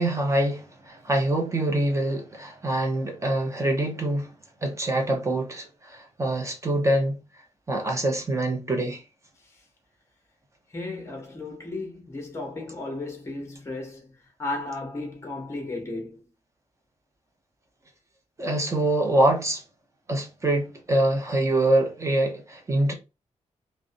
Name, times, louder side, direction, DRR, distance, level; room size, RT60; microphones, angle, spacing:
voice 1, 0.0-4.3 4.6-7.2 7.7-9.0 18.4-19.6 20.1-22.9, right 1 dB, 25° right, 0.6 m, -25 dB
voice 2, 10.7-14.1 14.4-16.2, left 2 dB, 20° left, 0.7 m, -34 dB
2.5 x 2.0 x 2.5 m
wide cardioid pair, 160°, 12 cm